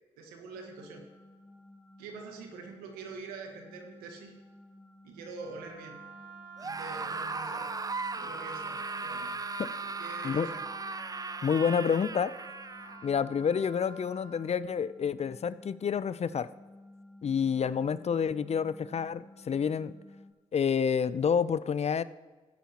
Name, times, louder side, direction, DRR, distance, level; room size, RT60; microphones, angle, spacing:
voice 1, 0.2-1.0 2.0-4.3 5.0-6.0 6.6-7.7 8.1-9.3 9.8-10.6, right 4 dB, 85° right, 3 dB, 1.4 m, -45 dB
sound 1, 0.5-20.3, left 1 dB, ahead, 2.5 m, -55 dB
Wind instrument woodwind instrument, 5.3-14.4, right 4 dB, 60° right, 1.5 m, -49 dB
Screaming, 6.6-13.1, right 4 dB, 25° right, 0.5 m, -37 dB
voice 2, 11.4-12.3 13.0-16.5 17.2-19.9 20.5-22.0, left 7 dB, 45° left, 17 dB, 0.5 m, -28 dB
15.5 x 10.0 x 3.0 m, 1.3 s
hypercardioid pair, 40°, 15 cm